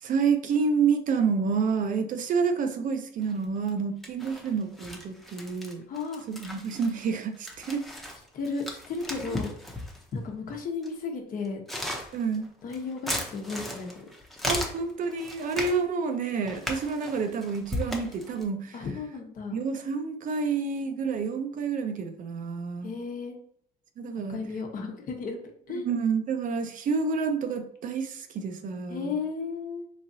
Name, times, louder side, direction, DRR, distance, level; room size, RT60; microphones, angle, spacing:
voice 1, 0.0-5.8 6.3-7.9 9.3-9.4 12.1-12.5 14.4-18.7 19.5-22.9 24.0-24.4 25.8-29.2, right 5 dB, 50° right, 7 dB, 0.5 m, -29 dB
sound 1, 3.2-3.7 4.0-10.1 10.8-10.9 11.4-15.8 16.4-18.4, left 1 dB, ahead, 0.7 m, -36 dB
voice 2, 5.9-6.3 8.3-9.5 10.1-11.6 12.6-14.1 18.7-19.6 22.8-23.4 24.3-25.4 25.7-25.9 28.9-29.9, left 4 dB, 55° left, 2 dB, 0.9 m, -34 dB
3.7 x 3.1 x 2.7 m, 0.64 s
cardioid pair, 110°, 17 cm